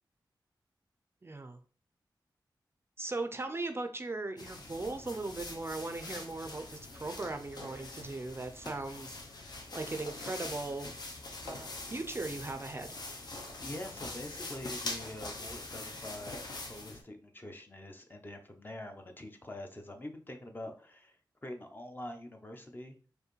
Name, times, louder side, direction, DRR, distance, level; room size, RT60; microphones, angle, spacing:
voice 1, 1.2-1.6 3.0-9.2 9.7-10.9 11.4-13.0, right 2 dB, 30° right, 7 dB, 0.4 m, -38 dB
sound 1, 4.4-17.0, left 2 dB, 60° left, 0.7 m, -43 dB
voice 2, 13.6-23.0, left 1 dB, 25° left, 4 dB, 0.7 m, -45 dB
4.6 x 2.6 x 3.1 m, 0.40 s
wide cardioid pair, 75°, 8 cm